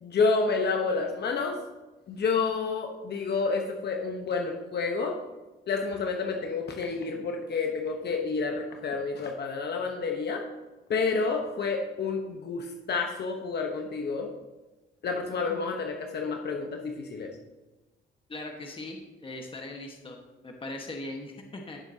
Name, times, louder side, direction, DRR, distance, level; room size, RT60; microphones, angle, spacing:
voice 1, 0.0-1.6 2.1-5.2 5.7-10.5 10.9-14.3 15.0-17.3, left 4 dB, 55° left, 3 dB, 1.1 m, -29 dB
voice 2, 18.3-21.8, left 2 dB, 25° left, 2 dB, 1.5 m, -40 dB
16.0 x 7.1 x 2.9 m, 1.2 s
cardioid pair, 90°, 20 cm